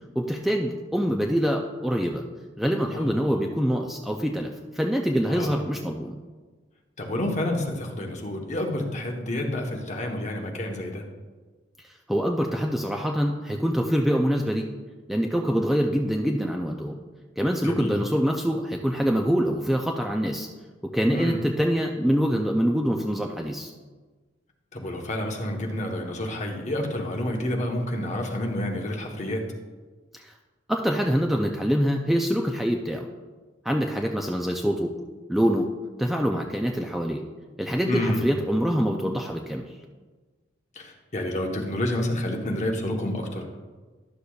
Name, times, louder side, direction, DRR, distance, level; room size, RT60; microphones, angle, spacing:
voice 1, 0.2-2.2 2.6-6.2 11.8-14.7 15.1-17.0 17.4-20.5 20.8-23.7 30.1-30.3 30.7-33.1 33.6-35.0 35.3-35.7 36.0-37.2 37.6-39.6, equal, ahead, 1 dB, 0.4 m, -25 dB
voice 2, 2.9-3.4 5.3-5.6 7.0-11.0 17.6-18.0 21.1-21.4 24.7-29.4 37.9-38.3 40.7-43.6, left 1 dB, 40° left, 2 dB, 1.0 m, -29 dB
11.5 x 6.6 x 2.3 m, 1.3 s
head